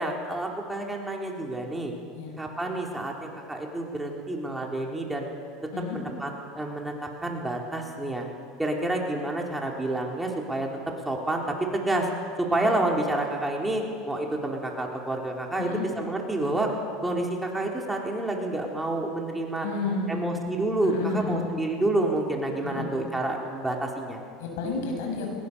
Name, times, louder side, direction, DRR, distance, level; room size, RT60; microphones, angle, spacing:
voice 1, 0.0-1.9 2.4-5.3 5.9-6.3 6.6-8.3 8.6-10.7 11.1-12.1 12.4-16.8 17.0-19.7 20.1-24.2, right 2 dB, 10° right, 0 dB, 3.8 m, -29 dB
voice 2, 19.6-20.4 20.8-21.5 22.6-22.9 24.4-25.4, left 4 dB, 80° left, 2 dB, 7.3 m, -31 dB
21.5 x 21.0 x 7.0 m, 2.1 s
supercardioid pair, 105°, 0 cm